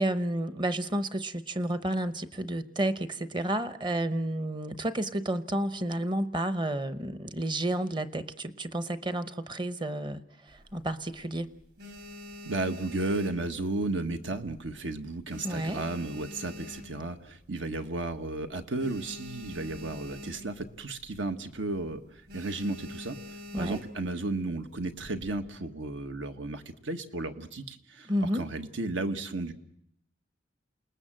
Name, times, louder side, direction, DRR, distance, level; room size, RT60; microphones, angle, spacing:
voice 1, 0.0-10.2 10.5-11.5 15.4-15.8 23.5-23.8 28.1-28.5, right 1 dB, 25° right, 12 dB, 0.9 m, -31 dB
sound 1, 10.5-11.2 11.6-14.1 14.4-14.8 15.0-17.3 17.8-17.9 18.0-18.2 18.5-20.7 21.0-21.2 21.6-21.8 22.3-24.1 24.8-25.4, left 1 dB, 55° right, 4.8 m, -45 dB
voice 2, 12.4-23.2 23.6-29.5, right 2 dB, 75° right, 7 dB, 1.6 m, -34 dB
28.0 x 19.5 x 7.7 m, 0.73 s
head